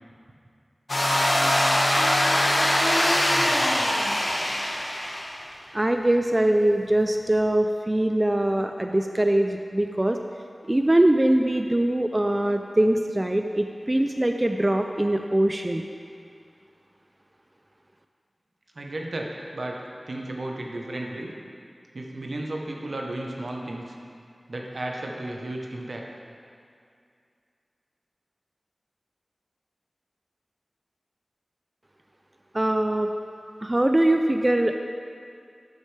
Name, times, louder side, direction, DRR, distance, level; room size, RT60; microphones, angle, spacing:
sound 1, 0.9-5.3, left 1 dB, 65° left, 1.3 m, -22 dB
voice 1, 5.7-10.2 10.7-15.9 32.5-33.1 33.6-34.8, right 1 dB, 30° right, 5 dB, 0.4 m, -22 dB
voice 2, 18.7-19.8 20.1-21.3 21.9-24.0 24.5-26.0, right 1 dB, 80° right, 0 dB, 1.0 m, -33 dB
12.0 x 6.5 x 3.3 m, 2.3 s
wide cardioid pair, 55°, 0 cm